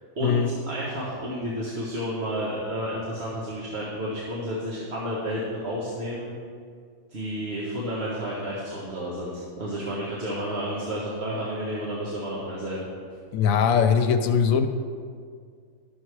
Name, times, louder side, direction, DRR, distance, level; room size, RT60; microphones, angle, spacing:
voice 1, 0.1-6.3 7.1-12.9, equal, 50° right, -7 dB, 1.6 m, -31 dB
voice 2, 13.3-14.7, left 7 dB, 75° left, 8 dB, 1.1 m, -21 dB
12.0 x 6.8 x 4.7 m, 2.1 s
omnidirectional pair, 1.5 m